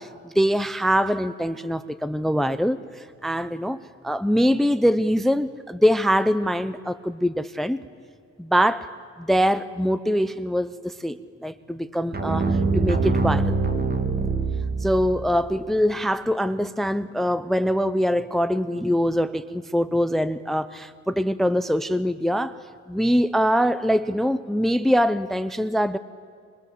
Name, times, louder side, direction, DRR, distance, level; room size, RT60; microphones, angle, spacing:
voice 1, 0.0-7.8 8.4-8.9 9.2-13.6 14.8-22.6 22.9-26.0, equal, ahead, 15 dB, 0.7 m, -23 dB
sound 1, 12.1-15.3, right 3 dB, 30° right, 2.1 m, -23 dB
27.5 x 25.0 x 7.8 m, 2.3 s
cardioid pair, 90°, 30 cm